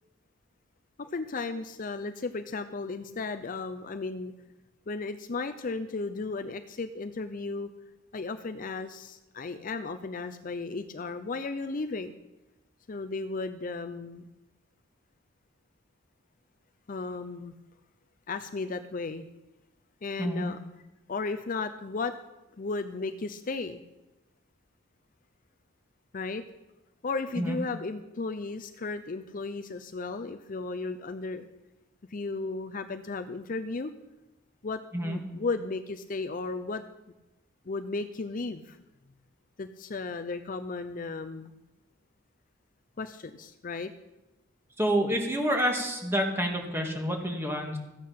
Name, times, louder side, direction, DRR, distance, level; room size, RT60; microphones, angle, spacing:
voice 1, 1.0-4.3 4.9-7.7 8.1-12.1 12.9-14.2 16.9-17.5 18.3-19.3 20.0-20.6 21.1-22.2 22.6-23.8 26.1-26.4 27.0-31.5 32.1-33.9 34.6-36.8 37.7-38.8 39.6-41.5 43.0-43.9, left 3 dB, 40° left, 9 dB, 0.5 m, -35 dB
voice 2, 44.8-47.8, equal, 10° right, 2 dB, 1.8 m, -28 dB
14.0 x 8.4 x 5.8 m, 1.0 s
head